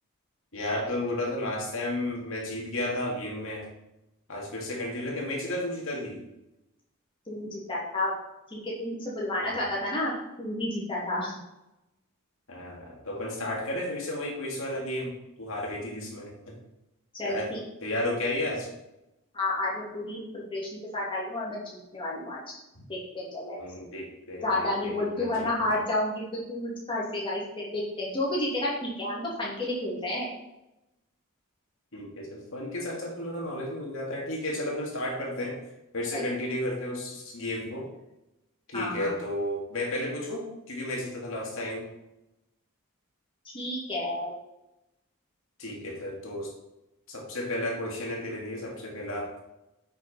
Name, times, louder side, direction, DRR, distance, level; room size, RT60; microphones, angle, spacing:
voice 1, 0.5-3.7 4.3-6.2 9.4-9.6 12.5-16.5 17.2-17.5 17.8-18.7 22.7-22.8 23.6-25.7 31.9-35.6 35.9-37.9 38.7-41.9 45.6-46.5 47.1-49.3, left 1 dB, 60° left, -2 dB, 2.5 m, -33 dB
voice 2, 7.3-8.1 8.5-11.4 17.1-17.6 19.3-20.2 20.5-21.6 21.9-22.4 22.9-23.9 24.4-30.3 36.1-36.2 38.7-39.1 43.5-44.3, left 1 dB, 25° left, -5 dB, 2.8 m, -31 dB
8.3 x 6.1 x 4.4 m, 0.92 s
head